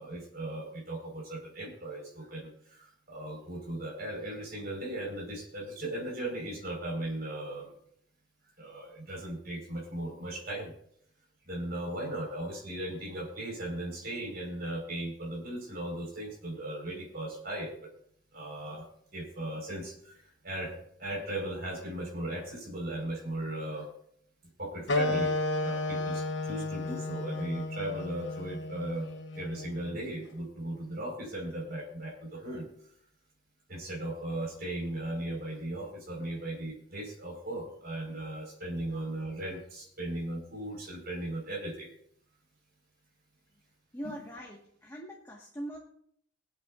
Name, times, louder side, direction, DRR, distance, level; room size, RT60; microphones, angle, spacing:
voice 1, 0.0-7.7 8.6-10.7 11.5-17.9 18.3-18.9 19.1-23.9 24.6-25.3 25.6-29.1 29.3-32.6 33.7-41.9 44.0-44.2, right 1 dB, 50° right, -1 dB, 4.8 m, -37 dB
sound 1, 24.9-30.0, left 2 dB, 65° left, 1.0 m, -33 dB
voice 2, 43.9-45.8, right 1 dB, 15° left, -2 dB, 1.5 m, -42 dB
24.0 x 8.6 x 2.5 m, 0.67 s
head